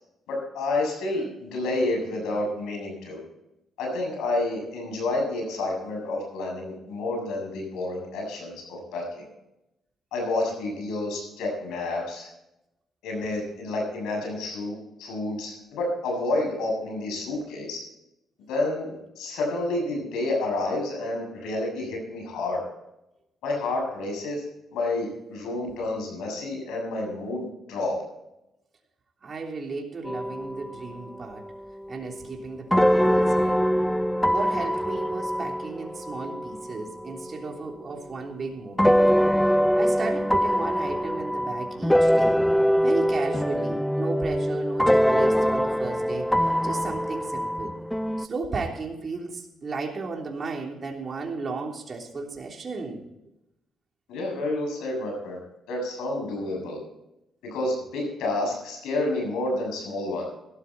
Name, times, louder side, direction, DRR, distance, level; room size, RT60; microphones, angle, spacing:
voice 1, 0.3-3.2 3.8-9.3 10.1-12.3 13.0-14.7 15.0-17.8 18.5-22.6 23.4-24.4 24.7-27.9 54.1-55.4 55.7-56.8 57.4-60.3, left 2 dB, 90° left, 1 dB, 7.1 m, -29 dB
voice 2, 29.2-31.5 31.9-33.6 34.3-39.0 39.4-42.4 42.8-46.3 46.6-47.7 48.2-53.0, right 4 dB, 40° right, 1 dB, 3.3 m, -34 dB
sound 1, 30.1-31.1 31.4-37.7 38.8-48.3, equal, 5° left, 0.5 m, -23 dB
16.5 x 13.0 x 4.2 m, 0.88 s
cardioid pair, 90°, 0 cm